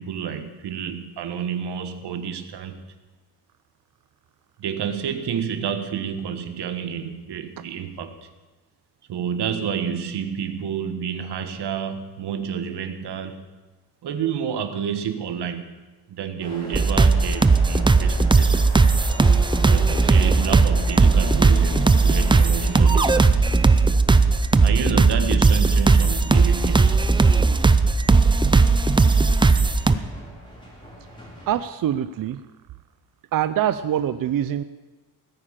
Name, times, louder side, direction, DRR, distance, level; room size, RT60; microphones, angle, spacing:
voice 1, 0.0-2.8 4.6-8.3 9.1-13.4 14.0-15.6 16.1-18.6 19.6-23.4 24.6-27.0, right 8 dB, 90° right, 8 dB, 1.6 m, -29 dB
sound 1, 16.4-31.5, equal, 10° left, 3.9 m, -42 dB
sound 2, 16.7-29.9, right 4 dB, 15° right, 0.4 m, -17 dB
voice 2, 31.4-32.4 33.3-34.6, right 10 dB, 60° right, 12 dB, 0.6 m, -24 dB
17.5 x 10.0 x 7.5 m, 1.2 s
wide cardioid pair, 175°, 39 cm